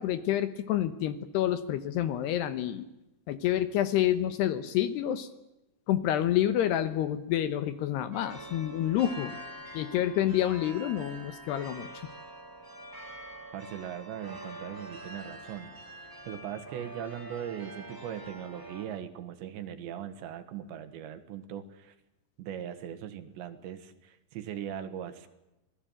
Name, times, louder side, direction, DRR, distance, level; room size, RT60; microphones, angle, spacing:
voice 1, 0.0-2.9 3.3-5.3 5.9-9.3 9.7-11.9, left 11 dB, 70° left, 13 dB, 2.8 m, -28 dB
sound 1, 8.1-18.9, right 1 dB, 5° right, 3.1 m, -45 dB
voice 2, 13.5-15.8 16.0-22.0 22.4-25.3, right 10 dB, 70° right, 10 dB, 3.8 m, -40 dB
27.0 x 19.0 x 9.0 m, 0.95 s
omnidirectional pair, 5.5 m